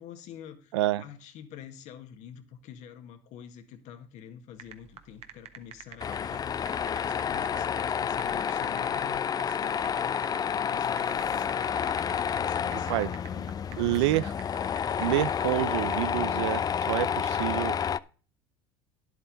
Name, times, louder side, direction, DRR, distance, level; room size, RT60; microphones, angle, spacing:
voice 1, 0.0-14.4, left 9 dB, 60° left, 1.7 m, -47 dB
voice 2, 0.7-1.0 12.9-13.1 13.8-14.3 14.9-16.6 16.9-17.8, right 16 dB, 80° right, 0.5 m, -27 dB
sound 1, 4.6-16.1, right 9 dB, 45° right, 1.3 m, -46 dB
Tools, 6.0-18.0, left 8 dB, 25° left, 0.4 m, -29 dB
10.5 x 8.2 x 3.9 m
hypercardioid pair, 85°, 14 cm